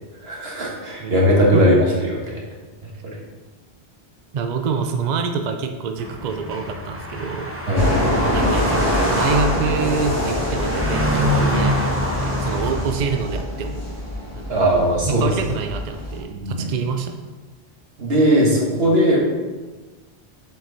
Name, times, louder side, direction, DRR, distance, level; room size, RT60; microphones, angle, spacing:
voice 1, 0.2-2.4 7.7-7.9 14.5-15.3 16.3-16.7 18.0-19.2, equal, 70° right, -3 dB, 1.7 m, -18 dB
voice 2, 4.3-7.5 8.2-14.0 14.3-14.7 15.1-17.3, right 5 dB, 55° right, 5 dB, 0.5 m, -26 dB
sound 1, 6.0-12.8, equal, 15° right, 0.8 m, -25 dB
sound 2, 7.7-16.2, left 1 dB, 15° left, 1.5 m, -25 dB
7.3 x 4.6 x 4.0 m, 1.3 s
omnidirectional pair, 1.1 m